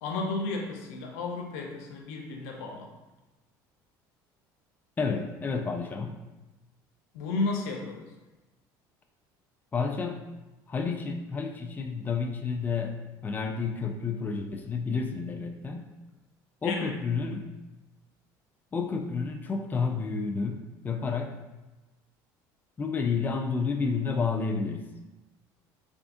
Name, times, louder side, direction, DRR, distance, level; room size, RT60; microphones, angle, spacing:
voice 1, 0.0-2.9 7.1-8.1 16.6-16.9 17.3-17.4, left 3 dB, 85° left, 1 dB, 0.6 m, -33 dB
voice 2, 5.0-6.2 9.7-10.3 10.7-15.9 16.6-17.5 18.7-21.3 22.8-24.9, left 5 dB, 20° left, 3 dB, 0.4 m, -30 dB
3.6 x 3.4 x 2.6 m, 1.1 s
supercardioid pair, 105°, 9 cm